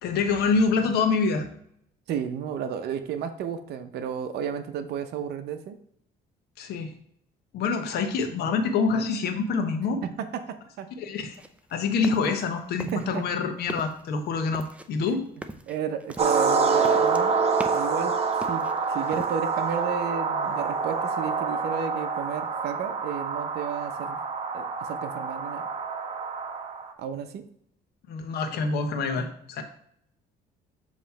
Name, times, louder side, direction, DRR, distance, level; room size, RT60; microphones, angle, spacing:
voice 1, 0.0-1.4 6.6-6.9 7.5-10.0 11.0-11.4 11.7-15.2 28.1-29.6, left 4 dB, 75° left, 6 dB, 1.1 m, -26 dB
voice 2, 2.1-5.8 10.0-10.9 12.9-13.2 15.7-17.3 17.7-18.2 18.5-18.6 18.9-24.2 24.5-25.6 27.0-27.4, right 8 dB, 75° right, 8 dB, 0.7 m, -32 dB
sound 1, 11.3-12.5 12.8-13.3 13.6-14.0 14.5-18.0 18.3-19.3, right 2 dB, 5° right, 0.5 m, -39 dB
sound 2, 16.2-26.9, right 5 dB, 40° right, 1.0 m, -27 dB
7.3 x 3.1 x 5.6 m, 0.68 s
cardioid pair, 110°, 17 cm